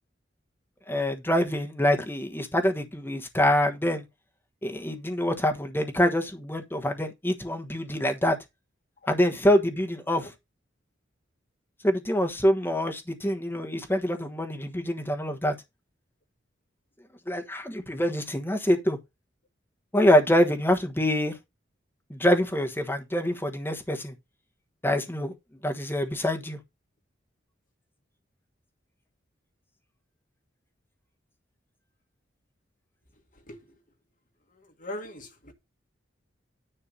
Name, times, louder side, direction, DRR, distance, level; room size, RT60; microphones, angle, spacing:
voice 1, 0.9-4.0 4.6-8.4 9.1-10.3 11.8-15.6 17.3-19.0 19.9-21.3 22.1-24.1 24.8-25.3 25.6-26.6, equal, 10° left, 1.3 m, -25 dB
voice 2, 33.3-33.8 34.5-35.5, left 1 dB, 45° left, 2.2 m, -41 dB
10.0 x 3.6 x 6.9 m
head